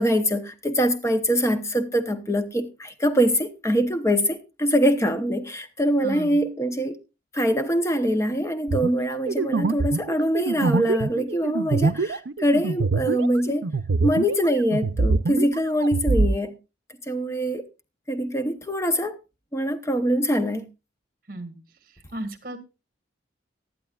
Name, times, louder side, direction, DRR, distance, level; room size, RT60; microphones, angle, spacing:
voice 1, 0.0-7.0 7.3-13.7 14.0-16.6 17.1-17.6 18.1-19.2 19.5-20.7, equal, 15° left, 0.8 m, -23 dB
voice 2, 6.0-6.4 21.3-21.6 22.1-22.6, right 1 dB, 50° right, 1.8 m, -34 dB
sound 1, 8.7-14.5 14.7-16.3, right 3 dB, 75° right, 0.6 m, -24 dB
18.0 x 12.0 x 2.4 m
head